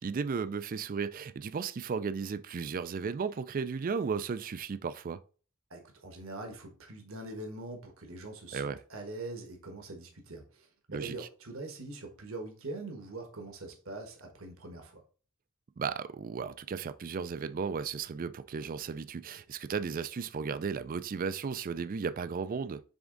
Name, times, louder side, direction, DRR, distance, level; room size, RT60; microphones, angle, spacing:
voice 1, 0.0-5.2 8.5-8.8 10.9-11.3 15.8-22.8, right 5 dB, 40° right, 0.4 m, -35 dB
voice 2, 5.7-8.6 8.9-15.0, right 2 dB, 70° right, 1.3 m, -43 dB
7.1 x 3.6 x 3.8 m
head